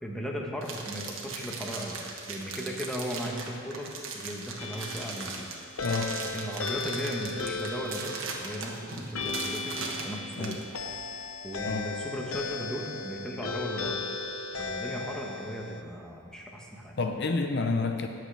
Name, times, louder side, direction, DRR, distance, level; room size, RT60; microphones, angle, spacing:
voice 1, 0.0-5.5 6.3-9.8 10.0-10.6 11.4-14.0 14.6-17.0, equal, 5° left, -1 dB, 1.1 m, -37 dB
sound 1, 0.6-10.6, right 4 dB, 70° right, 1.4 m, -39 dB
sound 2, 4.6-15.8, left 4 dB, 85° left, 0.9 m, -36 dB
voice 2, 5.8-6.1 10.4-10.6 11.6-11.9 17.0-18.1, left 3 dB, 55° left, 5 dB, 0.6 m, -29 dB
19.0 x 7.7 x 3.4 m, 2.4 s
head